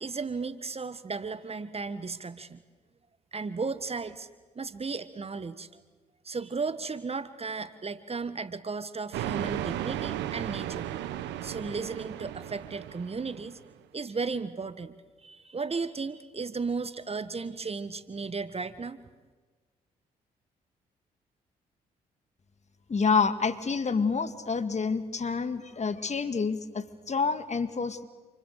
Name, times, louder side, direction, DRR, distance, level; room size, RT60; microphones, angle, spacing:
voice 1, 0.0-2.6 3.3-4.3 4.5-5.8 6.2-10.9 11.4-13.6 13.9-14.9 15.2-19.0, right 4 dB, 30° right, 14 dB, 1.6 m, -35 dB
sound 1, 9.1-13.6, right 12 dB, 65° right, 1.4 m, -35 dB
voice 2, 22.9-28.0, left 5 dB, 35° left, 11 dB, 2.2 m, -28 dB
29.0 x 28.0 x 6.7 m, 1.4 s
figure-of-eight pair, 40°, 20 cm